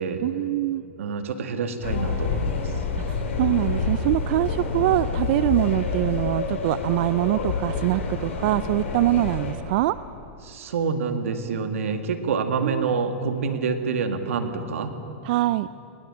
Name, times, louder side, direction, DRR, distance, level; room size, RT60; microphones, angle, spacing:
voice 1, 0.2-0.8 3.1-10.0 12.6-13.0 15.2-15.7, right 16 dB, 50° right, 15 dB, 0.4 m, -24 dB
voice 2, 1.0-2.7 10.4-15.0, right 5 dB, 85° right, 7 dB, 1.9 m, -27 dB
sound 1, 1.8-9.5, left 4 dB, 80° left, 4.3 m, -28 dB
20.0 x 17.5 x 8.7 m, 2.7 s
hypercardioid pair, 140°, 7 cm